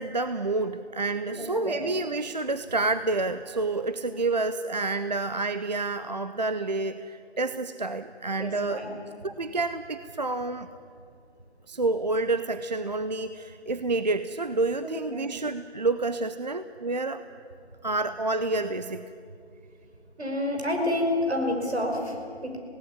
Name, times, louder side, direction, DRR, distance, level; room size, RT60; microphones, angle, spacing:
voice 1, 0.0-8.8 9.2-10.7 11.7-17.2 17.8-19.1, right 3 dB, 40° right, 11 dB, 0.5 m, -29 dB
voice 2, 1.3-1.9 8.4-9.0 14.8-15.3 20.2-22.6, left 1 dB, 70° right, 2 dB, 5.6 m, -29 dB
17.5 x 17.5 x 9.8 m, 2.4 s
figure-of-eight pair, 160°, 33 cm